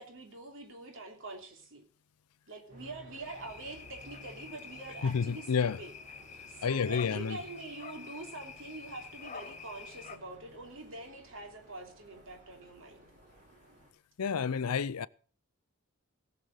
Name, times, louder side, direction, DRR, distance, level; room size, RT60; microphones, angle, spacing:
voice 1, 0.0-1.8 2.5-5.9 6.5-13.0, right 2 dB, 60° right, 3.1 m, -45 dB
sound 1, 2.7-13.9, equal, 35° right, 4.9 m, -56 dB
sound 2, 3.2-10.2, left 5 dB, 30° left, 0.8 m, -48 dB
voice 2, 5.0-5.8 6.6-7.4 14.2-15.1, left 6 dB, 90° left, 0.5 m, -30 dB
17.0 x 6.8 x 6.3 m
head